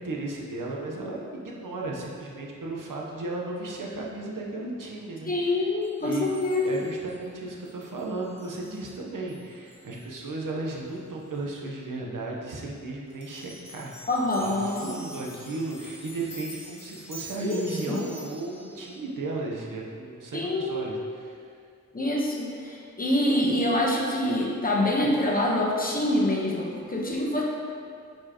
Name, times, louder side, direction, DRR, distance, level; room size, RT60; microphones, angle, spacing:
voice 1, 0.0-5.7 6.0-6.3 6.6-14.0 14.4-21.4, right 2 dB, 85° right, -2 dB, 1.0 m, -35 dB
voice 2, 5.3-6.7 14.1-14.9 17.4-18.0 20.3-20.7 21.9-27.4, left 1 dB, 25° left, -2 dB, 1.1 m, -26 dB
sound 1, 5.4-10.3 10.7-10.8 11.3-11.4 13.1-18.9, equal, 50° left, 1.6 m, -47 dB
9.6 x 4.6 x 3.0 m, 2.4 s
wide cardioid pair, 120°, 31 cm